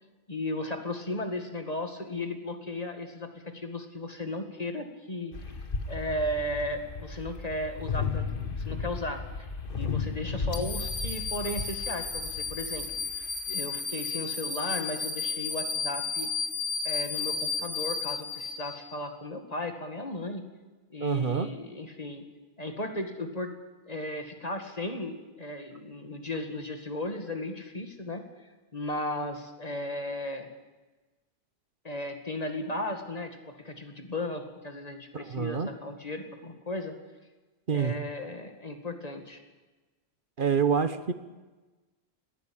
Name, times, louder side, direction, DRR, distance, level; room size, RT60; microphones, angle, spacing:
voice 1, 0.3-8.3 8.5-9.5 9.7-12.9 13.1-16.3 16.8-20.4 20.9-22.2 22.6-23.5 23.8-30.5 31.8-36.9 37.7-39.4, left 1 dB, 35° left, 5 dB, 2.2 m, -35 dB
sound 1, 5.3-13.5, left 5 dB, 55° left, 1.6 m, -35 dB
sound 2, 10.5-19.0, left 5 dB, 75° left, 2.4 m, -33 dB
voice 2, 21.0-21.5 35.1-35.7 37.7-37.9 40.4-41.1, right 6 dB, 55° right, 11 dB, 1.1 m, -27 dB
20.0 x 15.5 x 8.8 m, 1.2 s
omnidirectional pair, 1.1 m